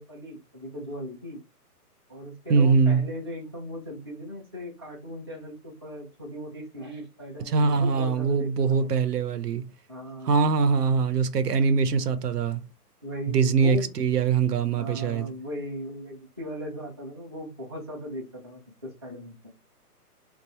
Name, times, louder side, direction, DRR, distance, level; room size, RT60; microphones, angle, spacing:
voice 1, 0.0-1.4 2.1-8.9 9.9-10.5 13.0-13.9 14.8-19.4, equal, 15° right, 0.5 m, -38 dB
voice 2, 2.5-3.0 7.5-9.6 10.2-12.6 13.3-15.3, right 5 dB, 75° right, 0.9 m, -23 dB
3.6 x 2.6 x 4.2 m
hypercardioid pair, 160°, 47 cm